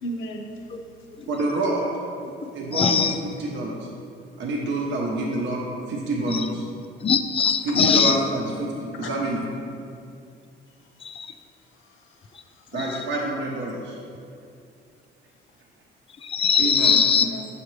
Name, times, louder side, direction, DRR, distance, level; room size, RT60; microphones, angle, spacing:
voice 1, 0.0-0.7 7.7-8.1 9.0-9.1 11.7-12.7 16.7-17.5, right 1 dB, 80° left, 3 dB, 0.8 m, -35 dB
voice 2, 1.3-1.9 2.5-3.9 4.4-5.6 5.9-6.6 7.6-9.4 12.7-14.0 16.6-16.9, right 2 dB, 70° right, -2 dB, 0.8 m, -27 dB
voice 3, 2.4-3.2 6.3-6.4 7.0-8.2 11.0-11.3 12.7-12.8 16.2-17.3, left 6 dB, 30° left, 8 dB, 0.4 m, -21 dB
6.9 x 5.0 x 3.2 m, 2.5 s
cardioid pair, 90°, 20 cm